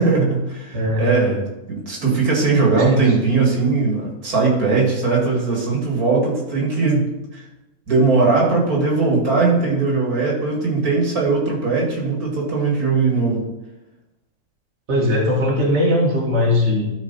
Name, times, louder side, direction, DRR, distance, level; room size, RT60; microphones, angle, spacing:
voice 1, 0.0-7.1 7.3-7.4 7.9-13.4, right 4 dB, 80° right, -2 dB, 2.6 m, -19 dB
voice 2, 0.7-1.1 2.7-3.1 14.9-17.0, left 1 dB, 50° right, -2 dB, 1.8 m, -19 dB
12.5 x 4.8 x 4.1 m, 0.99 s
omnidirectional pair, 1.6 m